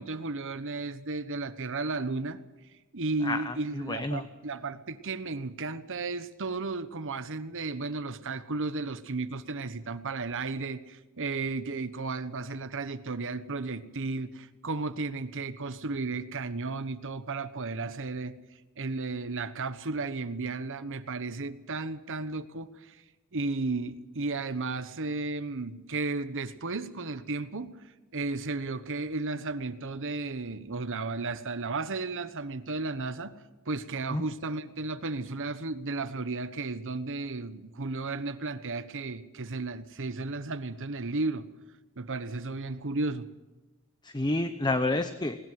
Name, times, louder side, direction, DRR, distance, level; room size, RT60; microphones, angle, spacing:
voice 1, 0.0-2.4 2.9-18.4 18.8-23.0 23.3-27.7 28.1-33.4 33.7-41.5 42.0-43.3, right 3 dB, 60° right, 1.2 m, -34 dB
voice 2, 3.2-4.2 34.1-34.2 44.0-45.4, left 2 dB, 20° left, 0.8 m, -29 dB
20.5 x 19.5 x 7.6 m
head